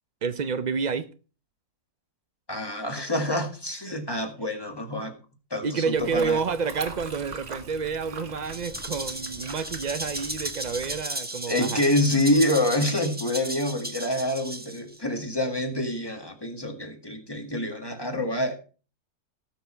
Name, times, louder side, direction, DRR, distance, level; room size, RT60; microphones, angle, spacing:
voice 1, 0.2-1.1 5.6-11.8, right 5 dB, 70° right, 0.4 m, -29 dB
voice 2, 2.5-5.2 5.5-6.4 11.5-18.6, left 1 dB, 15° left, 1.8 m, -27 dB
sound 1, 5.9-11.0, right 4 dB, 45° right, 1.6 m, -42 dB
Rattle (instrument), 8.4-15.0, right 1 dB, 5° right, 1.1 m, -35 dB
18.0 x 6.2 x 4.5 m
omnidirectional pair, 1.7 m